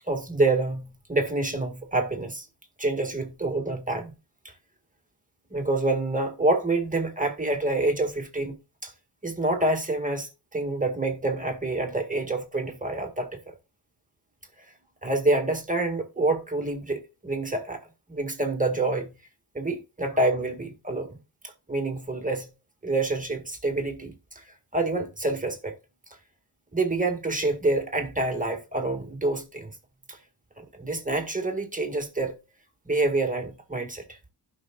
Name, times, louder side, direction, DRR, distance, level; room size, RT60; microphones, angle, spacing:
voice 1, 0.1-2.5 2.8-4.1 4.4-4.5 5.5-8.9 9.2-13.4 15.0-17.8 18.1-19.1 19.5-21.2 21.4-22.5 22.8-24.4 24.7-25.7 26.7-29.7 30.1-30.2 30.6-32.4 32.8-34.2, right 2 dB, 20° right, 1.8 m, -27 dB
16.0 x 5.6 x 2.3 m
wide cardioid pair, 95°, 41 cm